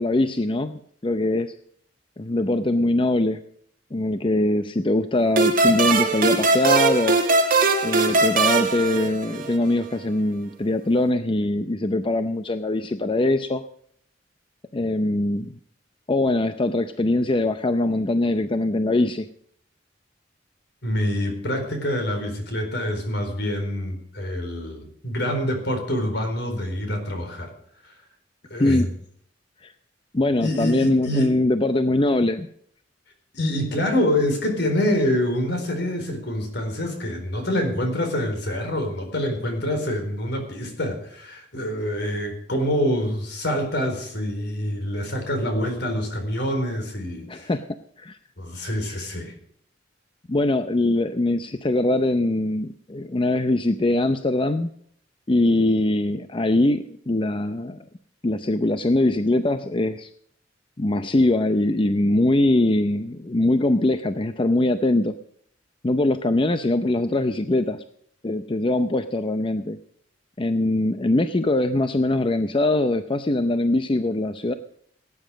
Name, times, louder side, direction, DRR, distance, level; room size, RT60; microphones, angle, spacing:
voice 1, 0.0-1.5 2.2-3.4 3.9-7.2 7.8-13.6 14.7-15.5 16.1-19.3 28.6-28.9 29.6-29.7 30.1-32.5 47.3-47.6 48.0-48.2 50.3-54.7 55.3-57.8 58.2-60.1 60.8-65.1 65.8-67.8 68.2-69.8 70.4-74.5, left 2 dB, 30° left, 10 dB, 0.6 m, -22 dB
sound 1, 5.4-9.7, right 3 dB, 50° right, 2.2 m, -20 dB
voice 2, 20.8-27.5 27.8-27.9 28.5-28.9 30.4-31.3 33.3-47.5 48.4-49.3, left 1 dB, 65° left, 5 dB, 4.3 m, -26 dB
18.0 x 9.7 x 5.0 m, 0.65 s
head